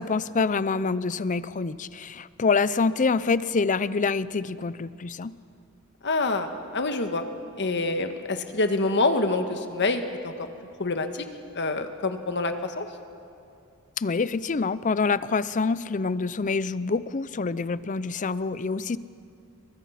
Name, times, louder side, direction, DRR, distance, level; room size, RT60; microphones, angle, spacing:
voice 1, 0.0-5.3 14.0-19.0, left 4 dB, 35° left, 17 dB, 0.5 m, -26 dB
voice 2, 6.0-7.2 7.6-10.5 10.8-11.3 11.5-12.8, left 3 dB, 55° left, 7 dB, 1.6 m, -26 dB
29.0 x 23.5 x 5.8 m, 2.6 s
head